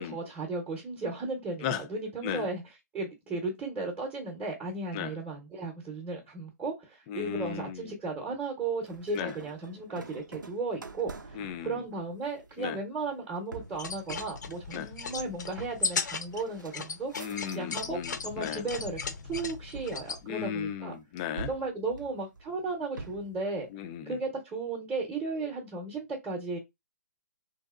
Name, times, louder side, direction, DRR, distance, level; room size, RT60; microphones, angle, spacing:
voice 1, 0.0-2.6 2.9-17.1 17.5-19.0 19.3-21.0 21.5-23.7 24.0-26.6, right 3 dB, 10° right, 0.7 m, -35 dB
voice 2, 7.1-7.9 9.1-9.3 11.3-11.8 12.6-12.8 14.7-14.9 17.2-18.6 20.2-21.5 23.7-24.2, left 9 dB, 20° left, 0.3 m, -36 dB
sound 1, 8.8-18.0 18.4-19.0 19.7-20.8 21.4-23.4, right 4 dB, 90° right, 0.6 m, -47 dB
sound 2, 13.7-20.2, left 5 dB, 70° left, 0.6 m, -36 dB
3.0 x 2.7 x 2.4 m
hypercardioid pair, 145°, 10 cm